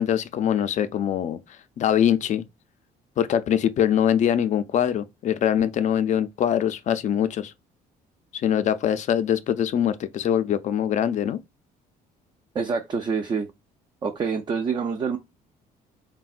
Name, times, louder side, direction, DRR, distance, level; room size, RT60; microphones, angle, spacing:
voice 1, 0.0-1.4 1.8-2.4 3.2-7.5 8.4-11.4, left 9 dB, 45° left, 0.4 m, -23 dB
voice 2, 12.5-13.5 14.0-15.2, right 5 dB, 25° right, 0.3 m, -26 dB
3.3 x 2.2 x 2.3 m
cardioid pair, 110°, 17 cm